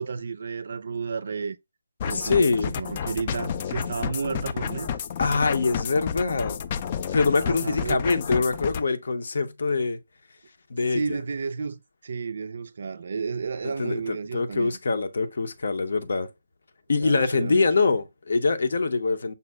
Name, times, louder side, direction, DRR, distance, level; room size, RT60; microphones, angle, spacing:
voice 1, 0.0-1.6 2.0-2.5 2.8-4.9 7.5-8.0 10.9-14.7 17.0-17.9, right 5 dB, 60° right, 0.4 m, -32 dB
sound 1, 2.0-8.8, left 7 dB, 35° left, 0.3 m, -31 dB
voice 2, 2.1-2.7 5.2-6.6 7.1-10.0 10.7-11.2 13.6-16.3 16.9-19.3, left 4 dB, 65° left, 0.6 m, -24 dB
5.5 x 2.1 x 3.2 m
figure-of-eight pair, 155°, 0 cm